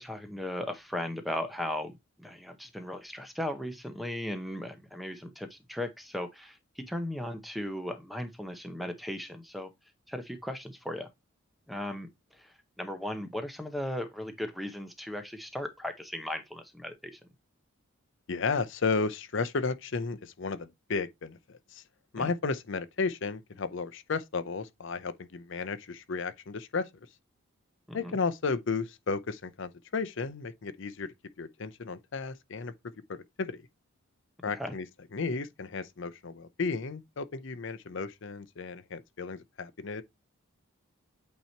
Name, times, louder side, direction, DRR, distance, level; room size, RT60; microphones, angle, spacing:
voice 1, 0.0-9.7 10.1-11.1 11.7-17.2 22.2-22.3 27.9-28.2 34.5-34.7, left 1 dB, ahead, 0.6 m, -37 dB
voice 2, 18.3-21.8 22.1-26.9 27.9-33.6 34.4-34.9 35.1-40.0, left 4 dB, 55° left, 0.6 m, -33 dB
8.5 x 2.9 x 4.3 m
head